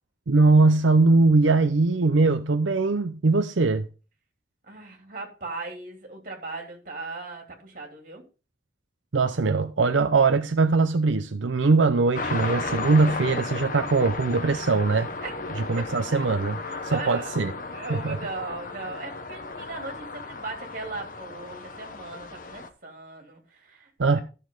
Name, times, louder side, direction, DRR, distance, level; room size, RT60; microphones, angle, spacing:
voice 1, 0.3-3.9 9.1-15.1 15.7-17.5 17.9-18.2 24.0-24.2, right 3 dB, 85° right, 0.7 m, -21 dB
voice 2, 4.6-8.2 15.2-15.4 15.8-15.9 16.6-17.3 17.7-24.2, right 3 dB, 45° right, 3.1 m, -38 dB
sound 1, 12.1-22.7, left 3 dB, 45° left, 1.1 m, -34 dB
13.0 x 6.8 x 3.9 m
head